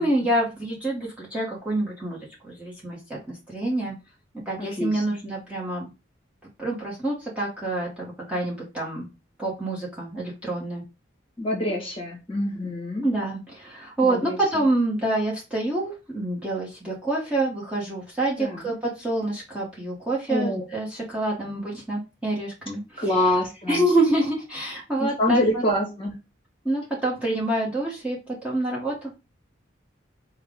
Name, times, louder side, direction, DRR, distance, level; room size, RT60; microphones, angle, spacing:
voice 1, 0.0-2.2 2.4-3.0 3.3-3.9 4.5-5.9 6.6-9.1 9.4-10.8 13.0-23.0 23.7-25.4 26.6-29.2, right 1 dB, 5° right, -5 dB, 1.1 m, -27 dB
voice 2, 4.6-5.2 11.4-13.0 14.0-14.6 18.4-18.7 20.3-20.6 23.0-23.8 25.0-26.1, left 1 dB, 25° left, 0 dB, 1.4 m, -26 dB
5.6 x 2.2 x 3.6 m, 0.27 s
head